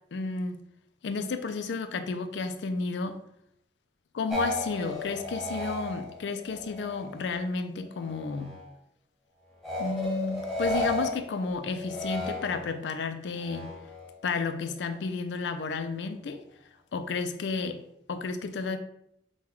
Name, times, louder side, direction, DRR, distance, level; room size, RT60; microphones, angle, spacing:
voice 1, 0.1-0.6 1.0-3.2 4.1-8.5 9.8-13.7 14.2-16.4 16.9-17.8 18.1-18.8, left 4 dB, 80° left, 9 dB, 0.4 m, -32 dB
sound 1, 4.3-7.5 7.8-8.7 9.6-12.9 13.4-14.1, left 1 dB, ahead, 0.9 m, -34 dB
5.6 x 2.2 x 3.0 m, 0.77 s
head